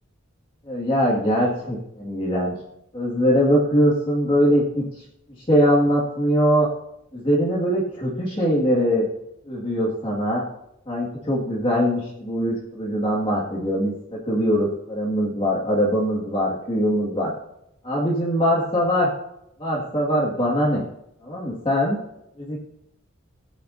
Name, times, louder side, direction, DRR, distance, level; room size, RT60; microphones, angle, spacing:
voice 1, 0.7-2.5 2.9-4.8 5.5-6.7 7.1-9.1 9.4-10.4 10.9-13.9 14.2-17.3 17.8-19.1 19.6-20.8 21.2-22.0 22.4-22.6, equal, 25° left, -5 dB, 1.9 m, -22 dB
17.0 x 9.3 x 2.7 m, 0.79 s
head